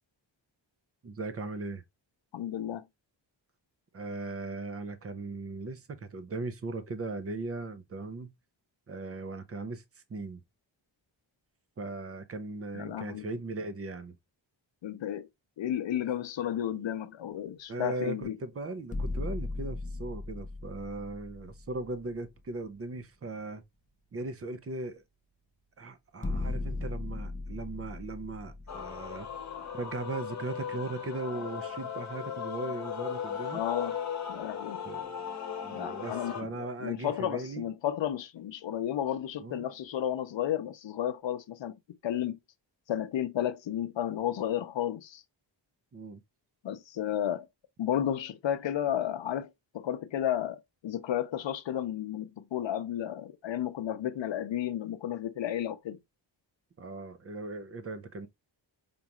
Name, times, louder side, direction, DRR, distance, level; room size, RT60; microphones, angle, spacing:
voice 1, 1.0-1.8 3.9-8.3 8.9-10.4 11.8-14.2 17.7-23.6 24.1-25.0 25.8-29.3 29.7-33.6 34.8-35.2 35.6-37.7 39.4-39.7 45.9-46.2 56.8-58.3, right 2 dB, 30° right, 0.5 m, -38 dB
voice 2, 2.3-2.8 12.7-13.3 14.8-15.3 15.6-18.4 33.5-33.9 34.3-34.8 35.7-41.7 42.0-42.4 42.9-45.2 46.6-47.5 47.8-49.5 49.7-56.0, left 10 dB, 70° left, 0.6 m, -32 dB
sound 1, 18.8-22.4 22.8-22.9 26.2-29.8, left 2 dB, 20° left, 0.4 m, -37 dB
Male singing / Female singing / Musical instrument, 28.7-36.4, left 7 dB, 35° left, 1.0 m, -37 dB
5.2 x 2.4 x 2.8 m
wide cardioid pair, 150°, 46 cm